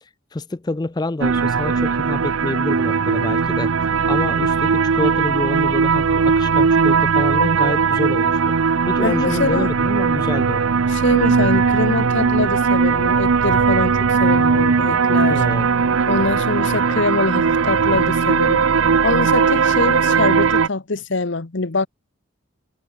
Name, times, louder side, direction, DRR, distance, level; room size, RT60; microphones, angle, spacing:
voice 1, 0.3-8.4 8.9-10.6 15.3-15.7, left 2 dB, 20° left, 0.4 m, -27 dB
sound 1, 1.2-20.7, right 5 dB, 85° right, 0.6 m, -18 dB
voice 2, 9.0-9.7 10.9-15.4 16.1-18.7 19.0-21.9, left 3 dB, 60° left, 1.0 m, -23 dB
head